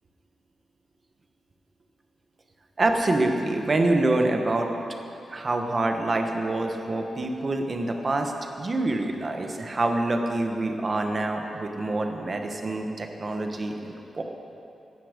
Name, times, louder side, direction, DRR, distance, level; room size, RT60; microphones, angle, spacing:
voice 1, 2.8-4.7 5.3-8.3 8.6-14.2, right 2 dB, 30° right, 4 dB, 1.3 m, -26 dB
17.5 x 12.5 x 5.2 m, 2.8 s
wide cardioid pair, 150°, 0 cm